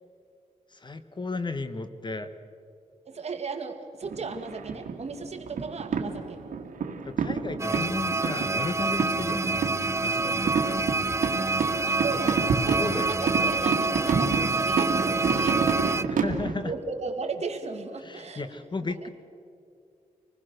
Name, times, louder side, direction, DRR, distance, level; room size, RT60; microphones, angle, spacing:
voice 1, 0.7-2.3 7.0-10.8 11.4-11.5 12.8-13.2 16.1-16.7 18.0-19.1, left 3 dB, 35° left, 10 dB, 1.2 m, -34 dB
voice 2, 3.1-6.4 11.9-16.2 16.6-18.4 18.8-19.1, right 4 dB, 55° right, 4 dB, 2.4 m, -36 dB
sound 1, 4.0-16.5, right 5 dB, 85° right, 1.8 m, -29 dB
sound 2, 7.6-16.0, right 3 dB, 20° right, 0.6 m, -27 dB
26.0 x 20.0 x 6.6 m, 2.4 s
wide cardioid pair, 100°, 14 cm